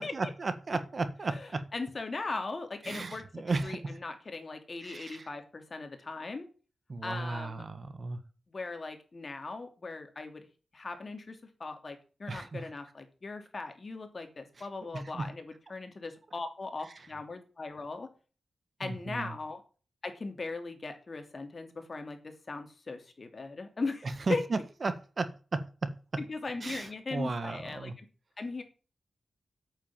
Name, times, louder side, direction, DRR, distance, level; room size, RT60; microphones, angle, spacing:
voice 1, 0.0-1.7 2.8-4.0 4.8-5.3 6.9-8.2 12.3-12.7 14.9-15.3 18.8-19.3 24.3-26.2 26.6-27.9, right 3 dB, 45° right, 11 dB, 1.6 m, -35 dB
voice 2, 1.3-3.2 3.6-6.5 7.0-7.6 8.5-10.5 10.7-18.1 18.8-19.6 20.0-24.4 26.2-28.0 28.4-28.6, left 3 dB, 40° left, 6 dB, 2.9 m, -39 dB
8.9 x 8.6 x 8.9 m, 0.36 s
wide cardioid pair, 115°, 0 cm